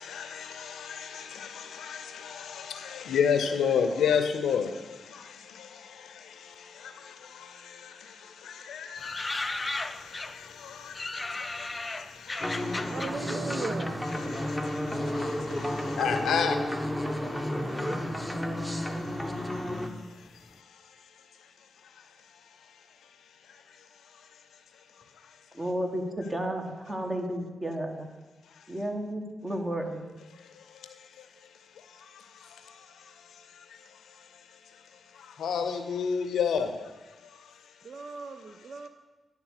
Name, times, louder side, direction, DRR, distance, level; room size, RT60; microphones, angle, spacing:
voice 1, 0.0-13.1 14.1-25.6 28.4-28.7 30.3-38.1 38.5-38.6, left 7 dB, 85° left, 8 dB, 0.6 m, -35 dB
sound 1, 9.0-10.5 10.9-14.8 15.1-16.0 16.6-17.1 17.4-17.5 17.7-20.1 20.3-20.5, left 2 dB, 35° left, 0.4 m, -37 dB
sound 2, 12.4-19.9, left 1 dB, ahead, 1.0 m, -32 dB
voice 2, 12.9-14.1 37.8-38.9, right 4 dB, 65° right, 8 dB, 0.4 m, -38 dB
voice 3, 25.5-28.1 28.7-30.1, right 1 dB, 25° right, 3 dB, 1.4 m, -32 dB
10.0 x 3.6 x 6.3 m, 1.2 s
supercardioid pair, 45°, 0 cm